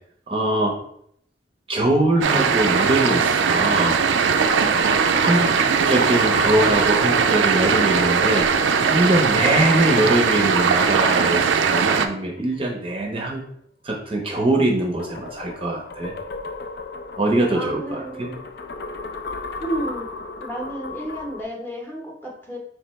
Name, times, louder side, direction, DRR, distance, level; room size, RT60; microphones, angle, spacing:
voice 1, 0.3-0.7 1.7-4.0 5.2-5.5 5.9-8.5 8.9-13.4 13.8-16.1 17.2-18.3, right 1 dB, 30° right, 0 dB, 0.6 m, -22 dB
sound 1, 2.0-12.6 14.5-21.4, left 3 dB, 55° left, 0.4 m, -35 dB
sound 2, 2.2-12.1, right 6 dB, 90° right, 0.4 m, -19 dB
voice 2, 5.1-5.4 17.5-18.3 19.6-20.1 20.4-22.6, right 1 dB, 10° left, -2 dB, 0.8 m, -31 dB
4.7 x 3.3 x 3.0 m, 0.69 s
head